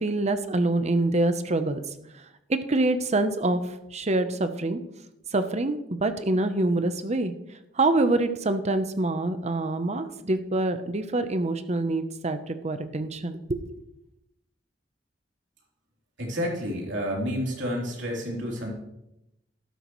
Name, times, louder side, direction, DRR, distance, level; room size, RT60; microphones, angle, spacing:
voice 1, 0.0-1.8 2.5-3.6 3.9-4.8 5.3-7.3 7.8-13.8, right 2 dB, 35° right, 10 dB, 0.8 m, -25 dB
voice 2, 16.2-18.7, equal, 75° right, -2 dB, 3.5 m, -30 dB
12.5 x 11.5 x 3.1 m, 0.87 s
head